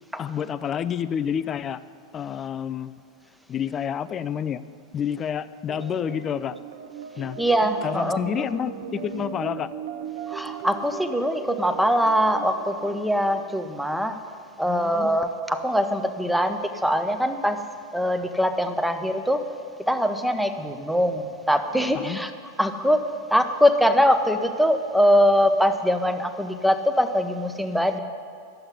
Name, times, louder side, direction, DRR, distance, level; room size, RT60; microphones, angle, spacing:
voice 1, 0.2-1.8 2.1-2.9 3.5-4.6 4.9-6.6 7.2-7.4 7.8-9.7 14.7-15.2 21.9-22.2, left 8 dB, 25° left, 15 dB, 0.4 m, -29 dB
sound 1, 5.7-14.3, right 7 dB, 55° right, 1.0 m, -38 dB
voice 2, 7.4-8.2 10.3-14.2 14.6-17.6 17.9-19.4 19.9-22.3 22.6-23.0 23.3-28.0, equal, ahead, 7 dB, 0.8 m, -22 dB
11.5 x 7.7 x 9.7 m, 2.5 s
figure-of-eight pair, 90°, 0 cm